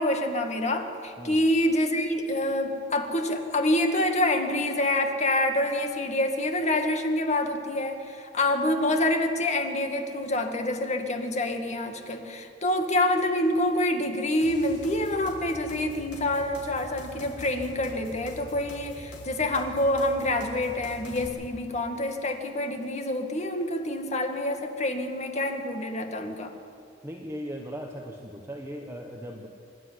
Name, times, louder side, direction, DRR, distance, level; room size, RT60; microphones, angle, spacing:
voice 1, 0.0-26.5, left 1 dB, 40° left, 5 dB, 2.0 m, -27 dB
sound 1, 14.4-21.3, left 1 dB, 75° left, 4.7 m, -44 dB
voice 2, 27.0-29.5, equal, 15° right, 1 dB, 1.3 m, -38 dB
25.5 x 12.5 x 9.8 m, 2.6 s
head